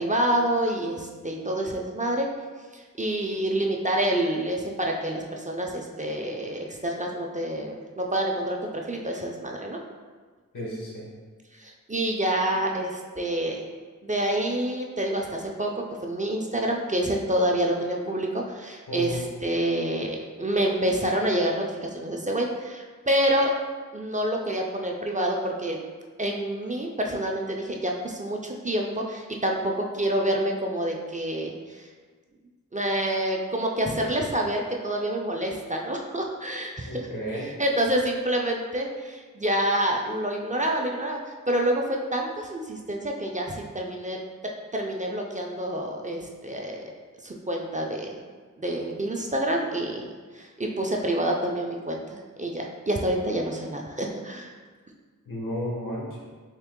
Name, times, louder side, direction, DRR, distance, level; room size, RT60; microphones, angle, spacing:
voice 1, 0.0-2.3 2.7-9.8 11.6-13.6 14.0-15.7 16.0-23.5 23.9-25.8 26.2-31.9 32.7-37.1 37.6-44.2 44.7-46.9 47.2-48.2 48.6-54.5, right 1 dB, 25° right, 0 dB, 0.4 m, -27 dB
voice 2, 10.5-11.1 18.9-19.2 36.8-37.5 55.3-56.2, equal, 80° left, -4 dB, 1.2 m, -33 dB
3.6 x 2.8 x 3.6 m, 1.5 s
wide cardioid pair, 75°, 32 cm